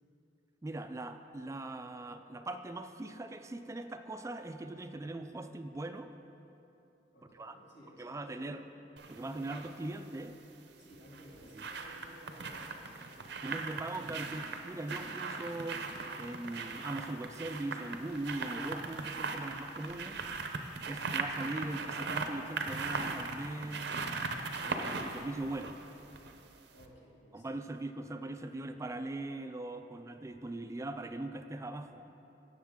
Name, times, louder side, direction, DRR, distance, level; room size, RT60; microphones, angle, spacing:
voice 1, 0.6-6.1 7.3-7.6 8.0-8.6 9.1-10.4 11.5-11.6 13.4-15.9 16.2-20.2 20.8-24.0 24.6-25.8 27.3-32.2, right 2 dB, 15° right, 8 dB, 0.3 m, -40 dB
voice 2, 7.1-8.7 10.8-14.2 20.8-21.6 26.7-27.5, equal, 90° left, -5 dB, 2.6 m, -57 dB
sound 1, 9.0-9.7 10.9-26.5 26.8-26.9, right 4 dB, 70° right, 0.7 m, -39 dB
17.0 x 6.7 x 3.7 m, 2.9 s
head